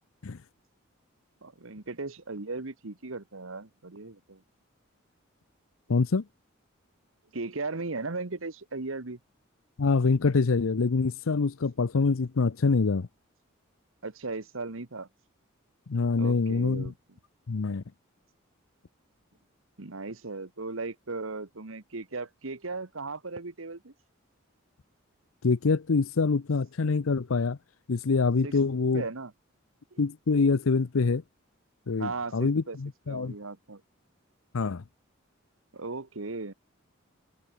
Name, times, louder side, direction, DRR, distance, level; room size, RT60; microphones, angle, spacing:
voice 1, 1.4-4.4 7.3-9.2 14.0-15.1 16.2-16.9 19.8-23.9 28.4-28.6 28.9-29.3 29.9-30.0 32.0-32.8 33.1-33.8 35.7-36.5, right 3 dB, 75° right, 1.4 m, -37 dB
voice 2, 5.9-6.2 9.8-13.1 15.9-16.9 17.5-17.8 25.4-27.6 27.9-29.0 30.0-31.2 31.9-33.3 34.5-34.8, left 4 dB, 80° left, 0.6 m, -25 dB
head